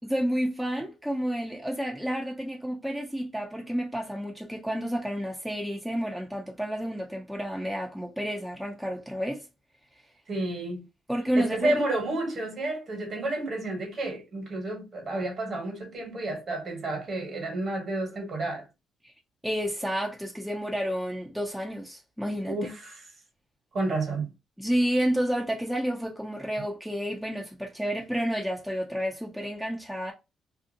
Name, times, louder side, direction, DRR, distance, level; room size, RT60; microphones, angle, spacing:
voice 1, 0.0-9.5 11.1-11.8 19.0-19.1 19.4-22.7 24.6-30.1, equal, ahead, 0.6 m, -30 dB
voice 2, 10.3-10.8 11.4-18.6 22.5-23.0 23.7-24.3, right 2 dB, 50° right, 1.2 m, -30 dB
2.5 x 2.4 x 2.7 m
cardioid pair, 90°, 0 cm